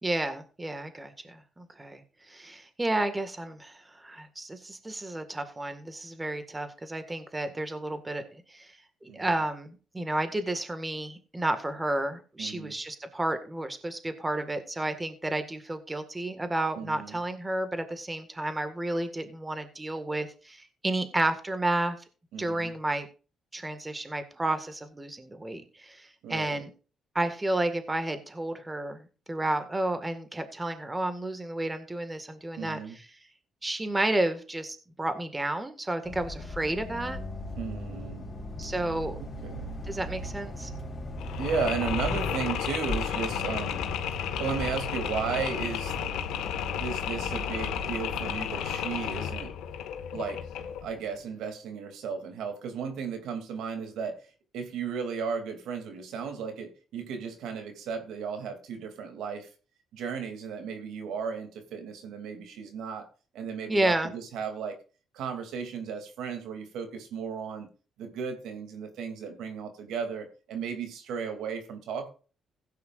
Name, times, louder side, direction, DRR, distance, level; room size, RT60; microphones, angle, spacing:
voice 1, 0.0-2.0 2.3-8.7 9.0-22.0 22.4-23.1 23.5-26.7 27.2-33.0 33.6-37.2 38.6-39.2 39.9-40.7 63.7-64.1, right 1 dB, 15° right, 9 dB, 1.8 m, -31 dB
voice 2, 12.4-12.7 16.8-17.2 22.3-22.7 26.2-26.6 32.6-33.0 37.6-38.3 39.2-39.8 41.4-43.8 44.4-45.9 46.8-49.5 50.1-50.4 50.8-54.2 54.5-59.5 59.9-63.1 63.3-64.8 65.1-67.7 68.0-72.1, right 6 dB, 85° right, 6 dB, 2.7 m, -35 dB
sound 1, 36.0-48.4, left 1 dB, 30° left, 3.6 m, -38 dB
Mechanisms, 41.2-50.9, left 9 dB, 90° left, 1.6 m, -33 dB
16.0 x 9.5 x 2.5 m, 0.35 s
cardioid pair, 90°, 0 cm